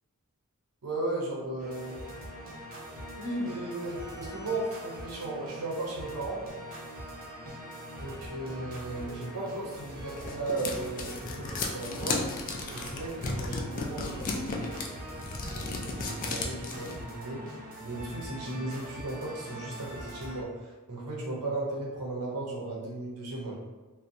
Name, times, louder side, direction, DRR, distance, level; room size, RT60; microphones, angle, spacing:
voice 1, 0.8-2.0 3.2-6.5 8.0-12.3 12.7-15.0 15.5-17.4 17.8-23.6, right 2 dB, 85° right, -3 dB, 0.6 m, -36 dB
sound 1, 1.6-20.4, equal, 40° right, 0.5 m, -43 dB
sound 2, 9.7-17.0, left 3 dB, 35° left, 0.3 m, -34 dB
2.6 x 2.1 x 2.5 m, 1.2 s
head